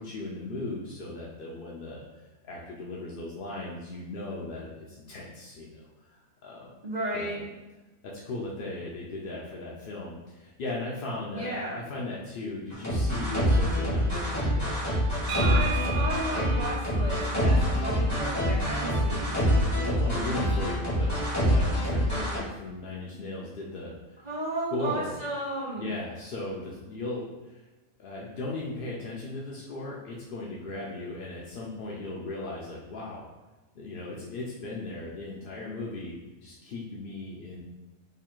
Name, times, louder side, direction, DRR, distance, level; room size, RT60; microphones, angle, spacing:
voice 1, 0.0-2.0 2.4-6.1 6.4-6.8 7.1-7.4 8.0-14.8 15.1-15.7 19.7-21.1 21.4-24.2 24.7-25.1 25.8-27.6 28.0-33.3 33.7-36.2 36.4-37.6, left 2 dB, 65° left, -4 dB, 0.5 m, -37 dB
voice 2, 6.8-7.4 11.3-11.8 15.4-19.5 24.2-25.9, right 1 dB, 35° right, -8 dB, 0.8 m, -33 dB
sound 1, 12.7-22.4, equal, 10° left, 1.4 m, -26 dB
sound 2, 15.3-19.1, right 5 dB, 65° right, 0.5 m, -38 dB
3.1 x 2.5 x 4.3 m, 1.1 s
omnidirectional pair, 1.5 m